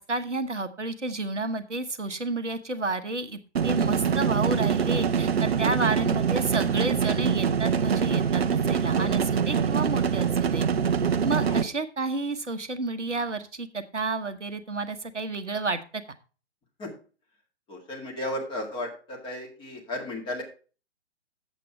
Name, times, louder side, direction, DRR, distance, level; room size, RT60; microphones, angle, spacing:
voice 1, 0.0-10.7 11.2-15.8, right 3 dB, 85° right, 8 dB, 1.1 m, -31 dB
sound 1, 3.6-11.6, right 7 dB, 60° right, 0.7 m, -24 dB
voice 2, 17.7-20.4, left 1 dB, 15° left, 0 dB, 1.9 m, -34 dB
8.1 x 7.6 x 4.5 m, 0.36 s
figure-of-eight pair, 125°, 35 cm